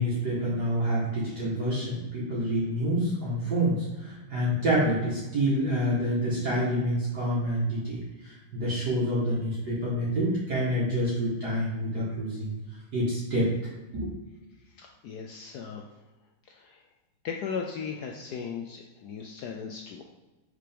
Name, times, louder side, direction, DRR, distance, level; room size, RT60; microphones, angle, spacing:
voice 1, 0.0-8.0 8.2-12.6 12.9-13.5 13.9-14.1, equal, 50° right, -7 dB, 2.0 m, -27 dB
voice 2, 14.7-15.8 16.5-16.8 17.2-20.1, left 6 dB, 75° left, 1 dB, 0.9 m, -37 dB
5.0 x 4.4 x 5.1 m, 1.1 s
omnidirectional pair, 2.3 m